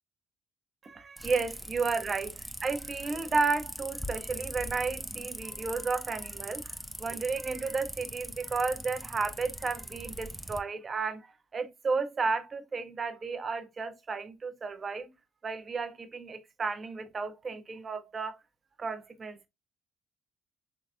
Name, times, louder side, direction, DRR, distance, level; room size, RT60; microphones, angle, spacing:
voice 1, 0.8-2.3 2.6-15.1 15.4-18.4 18.8-19.4, right 4 dB, 40° right, 0.8 m, -33 dB
sound 1, 1.2-10.6, equal, 5° right, 0.5 m, -41 dB
4.0 x 3.2 x 2.5 m
hypercardioid pair, 55°, 0 cm